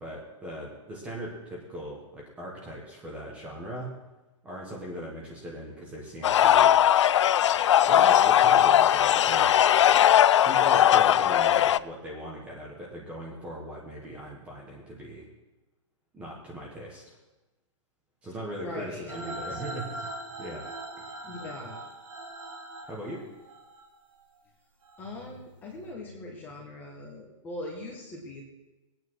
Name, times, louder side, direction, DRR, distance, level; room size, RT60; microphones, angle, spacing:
voice 1, 0.0-3.9 4.4-6.8 7.9-9.7 10.4-15.3 16.1-17.2 18.2-20.1 20.4-20.6 21.0-21.2 22.9-23.2, equal, 5° right, -3 dB, 1.5 m, -39 dB
sound 1, 6.2-11.8, left 11 dB, 65° left, 0.4 m, -19 dB
voice 2, 18.6-19.6 21.2-21.8 25.0-28.4, left 1 dB, 10° left, -1 dB, 1.6 m, -40 dB
sound 2, 19.1-24.2 24.8-25.2, right 2 dB, 85° right, 3.5 m, -41 dB
19.0 x 9.0 x 4.8 m, 1.1 s
hypercardioid pair, 180°, 16 cm